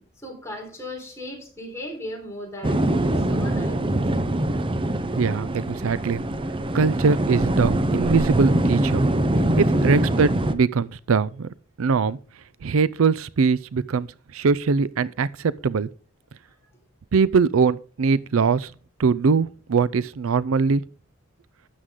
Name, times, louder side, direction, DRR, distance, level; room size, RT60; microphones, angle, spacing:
voice 1, 0.0-4.0, left 1 dB, 15° left, 4.1 m, -37 dB
sound 1, 2.6-10.5, right 1 dB, 25° right, 0.7 m, -23 dB
voice 2, 5.1-6.2 6.7-9.1 9.6-11.5 11.8-12.2 12.6-15.9 17.1-18.7 19.0-20.8, right 5 dB, 80° right, 0.5 m, -22 dB
12.5 x 8.0 x 3.7 m
head